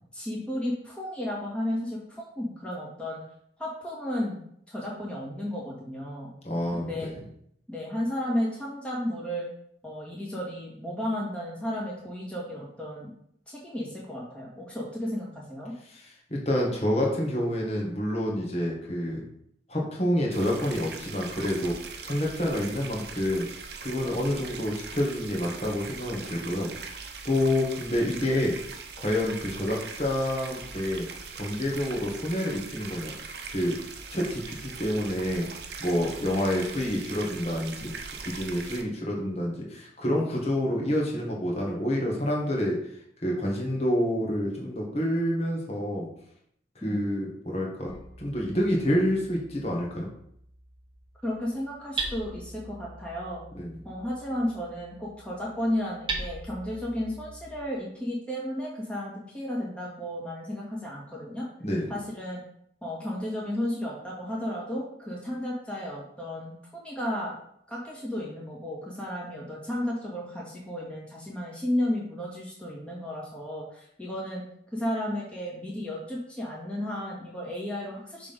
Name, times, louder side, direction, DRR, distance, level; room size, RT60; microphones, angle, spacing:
voice 1, 0.1-3.2 3.6-6.3 6.7-7.1 7.7-9.5 9.8-13.1 13.5-15.7 46.8-47.0 51.2-53.4 53.8-61.4 61.9-62.4 62.8-67.3 67.7-74.4 74.7-78.3, left 1 dB, 5° left, -5 dB, 2.0 m, -33 dB
voice 2, 6.4-7.2 15.9-19.2 19.7-21.7 22.0-23.5 23.8-28.5 29.0-31.1 31.3-33.1 33.5-33.8 34.1-35.5 35.8-37.9 38.3-42.8 43.2-46.1 46.8-50.1 53.5-53.8 61.6-61.9, left 1 dB, 35° left, -2 dB, 1.8 m, -28 dB
sound 1, 20.3-38.8, right 5 dB, 65° right, 0.8 m, -41 dB
Hammer, 47.9-57.6, right 3 dB, 25° right, 0.9 m, -41 dB
6.6 x 3.7 x 5.3 m, 0.70 s
head